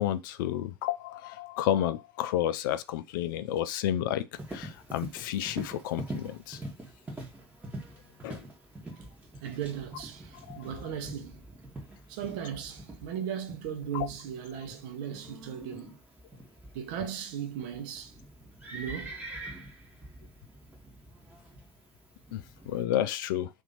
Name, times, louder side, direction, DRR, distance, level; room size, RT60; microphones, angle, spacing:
voice 1, 0.0-4.2 4.5-6.6 8.2-8.4 10.5-10.6 13.9-14.1 22.3-23.5, left 11 dB, 60° left, 0.4 m, -31 dB
Livestock farm animals working animals, 4.3-22.8, right 1 dB, 15° right, 1.2 m, -45 dB
voice 2, 9.4-11.4 12.1-15.9 16.7-18.1 18.7-19.2, right 9 dB, 55° right, 0.9 m, -37 dB
2.8 x 2.7 x 4.0 m
figure-of-eight pair, 80°, 13 cm